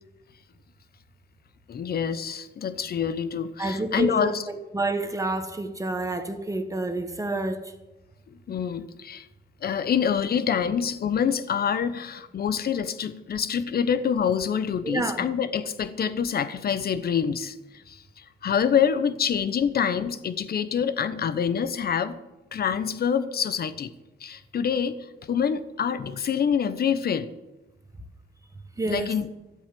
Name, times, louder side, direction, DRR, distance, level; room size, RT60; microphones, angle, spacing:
voice 1, 1.7-4.4 8.3-9.3 9.6-22.2 22.5-23.9 24.2-27.3 28.9-29.3, left 7 dB, 50° left, 1.0 m, -26 dB
voice 2, 3.6-7.7 14.8-15.3 28.8-29.1, right 2 dB, 15° right, 1.5 m, -29 dB
13.0 x 8.2 x 7.8 m
cardioid pair, 90°, 20 cm